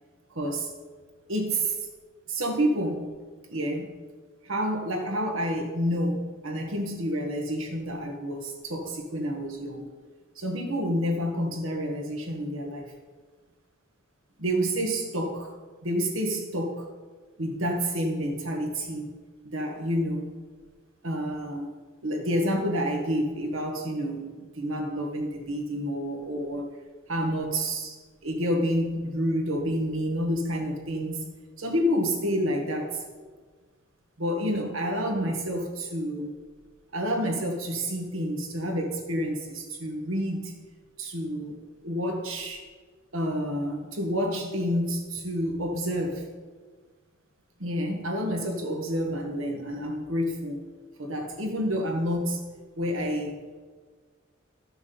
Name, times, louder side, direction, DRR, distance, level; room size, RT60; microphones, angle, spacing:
voice 1, 0.3-0.7 1.3-1.8 2.3-3.1 3.5-3.9 4.4-9.8 10.3-12.9 14.4-15.5 15.8-16.9 17.4-19.1 19.4-20.3 21.0-21.7 22.0-26.7 27.1-28.0 28.2-31.2 31.6-33.0 34.2-36.3 36.9-40.5 41.0-41.6 41.8-42.6 43.1-46.3 47.6-50.6 51.0-52.5 52.8-53.4, equal, 75° right, 2 dB, 1.5 m, -29 dB
13.0 x 6.3 x 5.4 m, 1.5 s
head